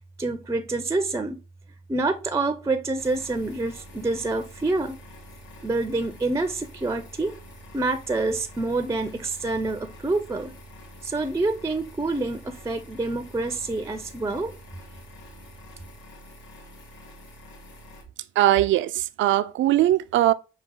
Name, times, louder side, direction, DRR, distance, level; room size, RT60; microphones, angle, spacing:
voice 1, 0.2-1.4 1.9-5.0 5.6-7.4 7.7-10.5 11.0-14.5, right 2 dB, 15° right, 0.5 m, -27 dB
sound 1, 3.0-18.0, equal, 70° left, 1.4 m, -47 dB
voice 2, 18.4-20.3, right 14 dB, 75° right, 0.4 m, -20 dB
6.0 x 2.3 x 3.6 m
cardioid pair, 90°, 20 cm